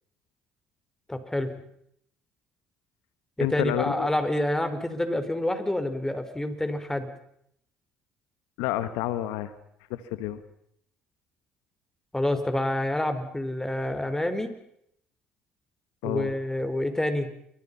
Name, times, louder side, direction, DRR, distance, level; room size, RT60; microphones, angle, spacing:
voice 1, 1.1-1.5 3.4-7.1 12.1-14.5 16.0-17.3, left 1 dB, 10° left, 8 dB, 5.0 m, -28 dB
voice 2, 3.4-4.1 8.6-9.5 9.9-10.4 16.0-16.3, left 13 dB, 80° left, 13 dB, 1.5 m, -29 dB
28.5 x 25.0 x 5.7 m, 0.72 s
hypercardioid pair, 60°, 5 cm